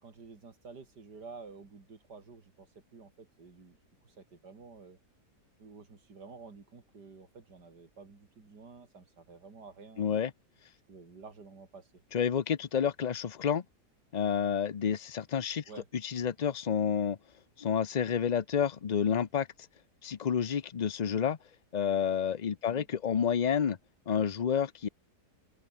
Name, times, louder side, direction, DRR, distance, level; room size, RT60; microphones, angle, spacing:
voice 1, 0.0-3.8 4.0-5.0 5.6-10.3 10.9-11.9 15.7-15.9 22.7-22.9, right 4 dB, 80° right, 3.7 m, -51 dB
voice 2, 10.0-10.3 12.1-13.6 14.1-15.6 16.0-17.2 17.6-19.5 20.0-21.4 21.7-23.8 24.1-24.9, left 7 dB, 45° left, 0.5 m, -29 dB
open air
omnidirectional pair, 1.8 m